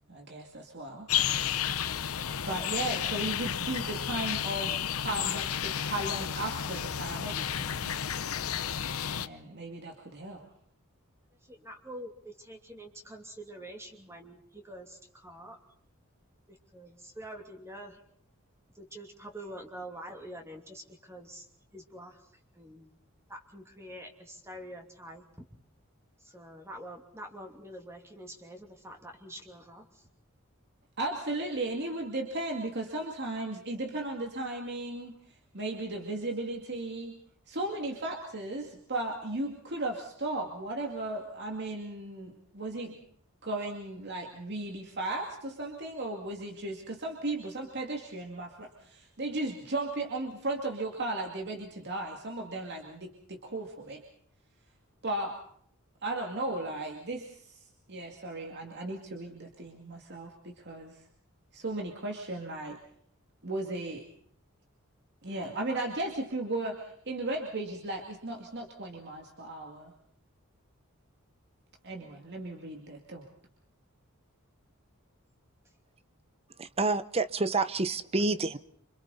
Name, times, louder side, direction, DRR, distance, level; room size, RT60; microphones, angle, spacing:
voice 1, 0.1-1.1 2.4-7.9 9.1-10.5 31.0-37.2 37.5-43.0 43.4-54.0 55.0-55.4 56.0-61.0 61.5-62.8 63.4-64.1 65.2-69.9 71.8-73.3, right 2 dB, 55° right, 2.4 m, -36 dB
sound 1, 1.1-9.3, left 9 dB, 85° left, 0.8 m, -32 dB
voice 2, 11.4-15.6 16.5-18.0 18.7-21.5 21.7-22.2 22.5-22.9 23.3-25.5 26.2-30.0, right 1 dB, 15° right, 2.8 m, -46 dB
voice 3, 76.6-78.6, right 3 dB, 30° right, 0.8 m, -28 dB
27.5 x 26.0 x 4.1 m
head